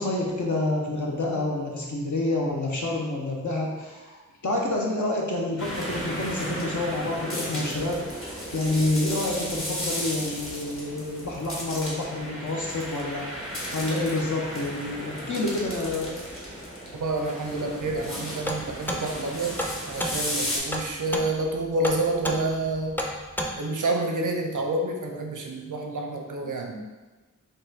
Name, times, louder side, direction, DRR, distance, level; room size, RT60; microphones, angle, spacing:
voice 1, 0.0-13.3 13.7-16.3, left 2 dB, 70° left, -2 dB, 0.9 m, -28 dB
sound 1, 5.6-20.6, equal, 45° left, 1.3 m, -34 dB
voice 2, 16.9-23.0 23.6-26.9, right 2 dB, 85° right, 3 dB, 0.6 m, -28 dB
sound 2, 18.5-23.5, equal, 5° left, 0.5 m, -31 dB
4.6 x 2.6 x 4.0 m, 1.2 s
wide cardioid pair, 45°, 31 cm